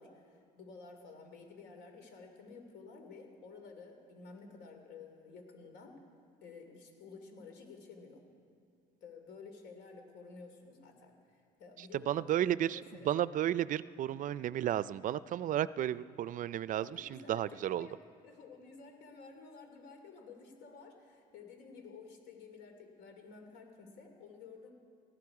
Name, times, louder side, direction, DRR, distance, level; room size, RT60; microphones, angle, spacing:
voice 1, 0.0-6.0 6.4-8.2 9.0-13.2 16.8-24.7, left 4 dB, 80° left, 4 dB, 2.8 m, -52 dB
voice 2, 11.8-17.9, right 11 dB, 50° right, 18 dB, 0.4 m, -33 dB
18.5 x 15.5 x 4.8 m, 2.4 s
cardioid pair, 110°, 17 cm